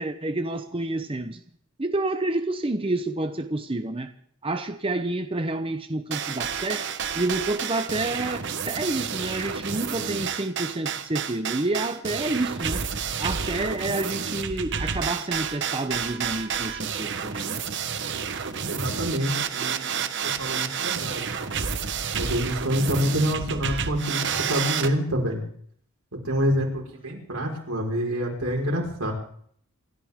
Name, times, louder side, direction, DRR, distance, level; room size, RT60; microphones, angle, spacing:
voice 1, 0.0-1.4 1.8-4.1 4.4-6.9 7.1-12.8 13.2-17.6, right 2 dB, 25° right, 0.9 m, -29 dB
sound 1, 6.1-24.9, right 7 dB, 55° right, 1.1 m, -30 dB
voice 2, 18.7-21.4 22.1-25.4 26.2-29.1, equal, 85° right, 5.0 m, -27 dB
27.5 x 13.5 x 3.7 m
head